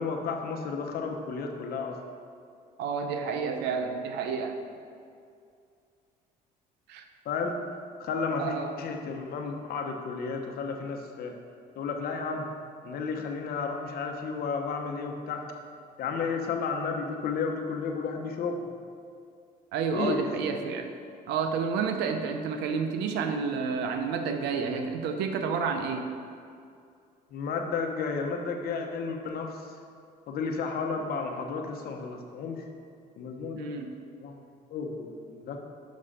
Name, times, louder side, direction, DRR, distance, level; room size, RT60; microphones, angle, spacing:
voice 1, 0.0-2.0 7.2-7.6 8.0-11.4 11.7-12.5 12.8-15.4 16.0-18.7 19.9-20.2 27.3-29.7 30.3-32.7 33.2-33.9 34.2-34.4 34.7-35.6, left 5 dB, 65° left, 3 dB, 1.0 m, -32 dB
voice 2, 2.8-4.6 6.9-7.0 8.4-8.7 19.7-20.9 21.3-26.1 33.5-33.9, right 5 dB, 90° right, 5 dB, 0.7 m, -30 dB
6.4 x 5.6 x 5.0 m, 2.4 s
cardioid pair, 110°, 17 cm